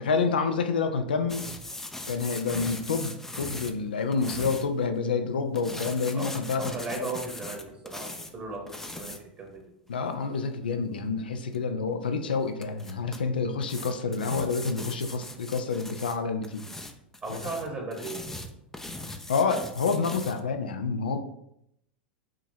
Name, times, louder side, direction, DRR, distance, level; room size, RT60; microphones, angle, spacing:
voice 1, 0.0-1.5 2.1-7.1 9.9-16.7 17.3-17.4 19.3-21.2, left 4 dB, 80° left, 7 dB, 0.4 m, -28 dB
sound 1, 1.3-4.7 5.6-8.3 8.7-9.2 11.5-11.6 12.6-13.2 13.6-16.2 16.4-20.4, left 2 dB, 10° left, 0.4 m, -40 dB
voice 2, 6.1-9.6 17.2-18.4, right 3 dB, 30° right, 0 dB, 1.2 m, -37 dB
4.8 x 2.9 x 2.7 m, 0.75 s
hypercardioid pair, 90°, 5 cm